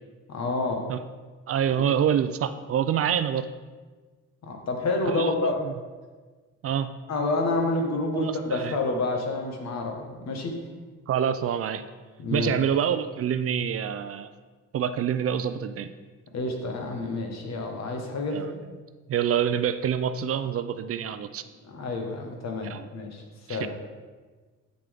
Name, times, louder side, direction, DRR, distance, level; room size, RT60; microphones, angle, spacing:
voice 1, 0.3-0.8 1.7-1.8 4.4-5.6 7.1-10.5 12.2-12.5 16.3-18.4 21.7-23.2 23.5-23.7, left 2 dB, 60° left, 2 dB, 1.5 m, -28 dB
voice 2, 1.5-3.5 5.1-5.7 6.6-6.9 8.1-8.7 11.1-11.8 12.3-14.3 14.7-15.9 18.3-18.5 19.1-21.4 22.7-22.9 23.5-23.7, right 9 dB, 50° right, 11 dB, 0.5 m, -26 dB
7.9 x 6.7 x 3.5 m, 1.4 s
cardioid pair, 90°, 30 cm